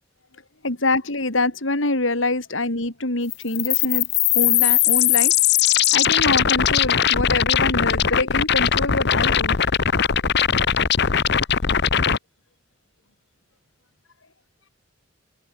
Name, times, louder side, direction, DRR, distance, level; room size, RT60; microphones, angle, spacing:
voice 1, 0.6-4.1 4.3-5.3 5.7-9.6, left 2 dB, 80° left, 4.0 m, -25 dB
sound 1, 3.3-12.2, left 9 dB, 60° left, 1.0 m, -19 dB
head